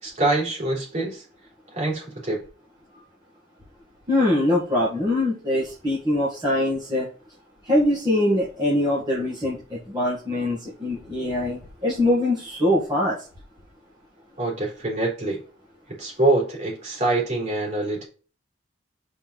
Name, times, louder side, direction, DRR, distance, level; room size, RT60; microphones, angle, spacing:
voice 1, 0.0-1.2 1.7-2.4 14.4-15.4 15.9-18.0, right 2 dB, 40° right, -3 dB, 3.3 m, -25 dB
voice 2, 4.1-7.1 7.7-13.2, left 1 dB, 25° right, -7 dB, 1.8 m, -23 dB
5.5 x 4.4 x 3.9 m, 0.37 s
head